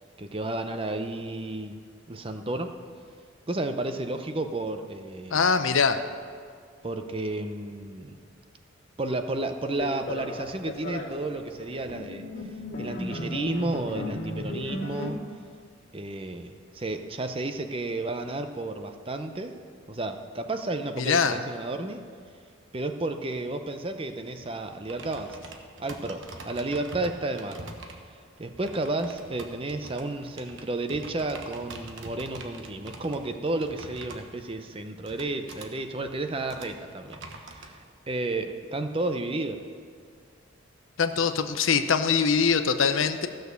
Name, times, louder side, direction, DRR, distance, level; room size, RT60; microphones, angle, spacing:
voice 1, 0.2-1.8 2.1-2.7 3.5-5.5 6.8-8.2 9.0-12.2 12.8-15.2 15.9-19.5 19.9-22.0 22.7-25.5 25.8-27.7 28.4-37.2 37.5-39.6, right 2 dB, 25° right, 7 dB, 0.6 m, -32 dB
voice 2, 5.3-6.0 21.0-21.4 41.0-43.3, left 5 dB, 75° left, 9 dB, 0.7 m, -23 dB
sound 1, 9.7-15.1, left 1 dB, 50° left, 1.9 m, -35 dB
sound 2, 23.8-37.7, right 2 dB, 65° right, 1.2 m, -45 dB
15.0 x 6.6 x 6.8 m, 2.1 s
head